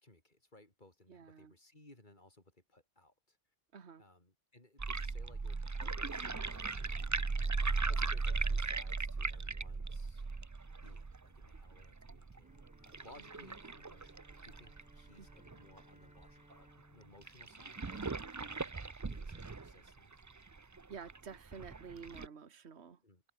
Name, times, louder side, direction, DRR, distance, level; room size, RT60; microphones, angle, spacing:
voice 1, 0.0-3.4 4.0-7.4 7.7-10.2 10.8-18.7 19.1-20.1 23.0-23.2, left 2 dB, 40° left, 5.0 m, -61 dB
voice 2, 1.1-1.5 3.7-4.0 15.2-15.5 20.9-23.0, right 6 dB, 65° right, 1.7 m, -50 dB
sound 1, 4.8-15.8 16.2-16.3 16.5-16.6 17.2-22.3, right 4 dB, 25° right, 0.4 m, -38 dB
Bowed string instrument, 12.4-18.6, equal, 5° right, 6.5 m, -65 dB
omnidirectional pair, 1.2 m